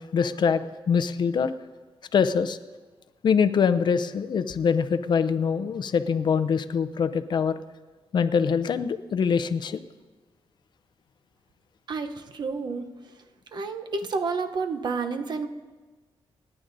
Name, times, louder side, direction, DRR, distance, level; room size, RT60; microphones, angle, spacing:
voice 1, 0.0-1.5 2.1-2.6 3.2-7.6 8.1-9.8, left 6 dB, 50° left, 11 dB, 0.5 m, -24 dB
voice 2, 11.9-12.9 13.5-15.5, right 4 dB, 50° right, 7 dB, 0.7 m, -30 dB
27.0 x 9.8 x 2.6 m, 1.3 s
wide cardioid pair, 155°, 10 cm